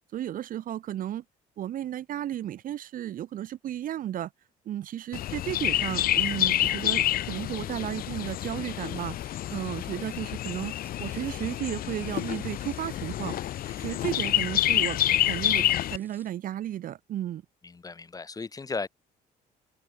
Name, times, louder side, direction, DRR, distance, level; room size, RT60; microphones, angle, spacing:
voice 1, 0.1-1.2 1.6-4.3 4.6-13.4 13.8-15.0 15.3-15.7 15.9-17.4, right 11 dB, 55° right, 0.8 m, -34 dB
Chirp tweet, 5.1-16.0, left 13 dB, 60° left, 0.8 m, -28 dB
sound 1, 5.6-16.3, right 2 dB, 10° right, 7.8 m, -60 dB
voice 2, 17.6-18.9, left 4 dB, 20° left, 1.1 m, -36 dB
open air
cardioid pair, 110°, 17 cm